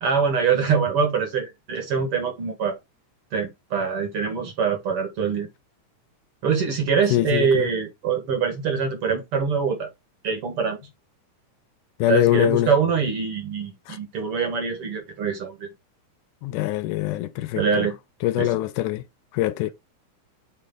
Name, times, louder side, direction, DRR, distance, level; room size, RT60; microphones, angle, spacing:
voice 1, 0.0-2.8 3.3-5.5 6.4-9.9 10.2-10.8 12.1-15.7 17.6-18.0 18.4-18.5, right 6 dB, 55° right, 1.9 m, -24 dB
voice 2, 7.1-7.7 12.0-12.7 13.9-14.0 16.4-17.9 18.2-19.0 19.3-19.7, left 15 dB, 85° left, 2.0 m, -23 dB
8.4 x 3.2 x 3.7 m
omnidirectional pair, 3.6 m